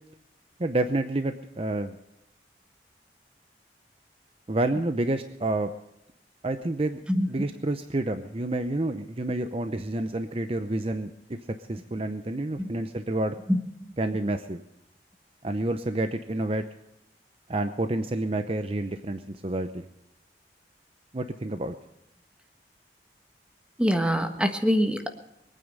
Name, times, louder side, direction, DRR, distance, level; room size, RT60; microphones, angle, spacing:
voice 1, 0.6-2.0 4.5-5.7 6.4-7.0 7.3-11.1 11.7-13.4 14.0-14.6 15.4-16.6 17.5-19.8 21.1-21.8, right 2 dB, 35° right, 8 dB, 0.7 m, -29 dB
voice 2, 23.8-25.1, equal, 5° right, 6 dB, 1.4 m, -24 dB
23.5 x 9.3 x 5.4 m, 0.87 s
head